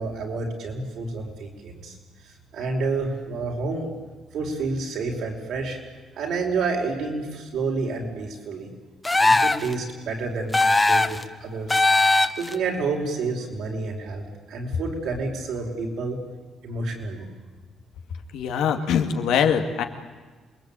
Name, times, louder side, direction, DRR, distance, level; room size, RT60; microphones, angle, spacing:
voice 1, 0.0-2.0 2.5-3.9 4.3-5.8 6.2-8.7 9.2-11.8 12.4-16.2 16.6-17.3, right 3 dB, 75° right, 1 dB, 5.4 m, -29 dB
sound 1, 9.0-9.7 10.5-11.2 11.7-12.5, left 2 dB, 15° left, 1.1 m, -19 dB
voice 2, 18.3-19.8, left 7 dB, 85° left, 5 dB, 2.4 m, -22 dB
27.5 x 20.5 x 9.2 m, 1.4 s
cardioid pair, 90°, 0 cm